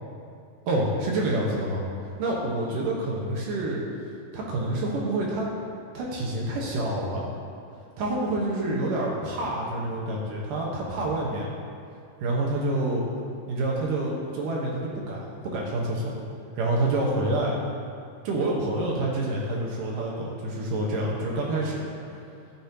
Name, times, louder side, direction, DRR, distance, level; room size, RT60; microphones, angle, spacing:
voice 1, 0.7-1.8 2.2-3.8 4.3-5.5 5.9-7.2 8.0-11.5 12.2-13.1 13.5-16.1 16.6-17.6 18.2-21.9, right 2 dB, 70° right, -3 dB, 2.7 m, -27 dB
15.5 x 7.5 x 2.9 m, 2.4 s
omnidirectional pair, 4.1 m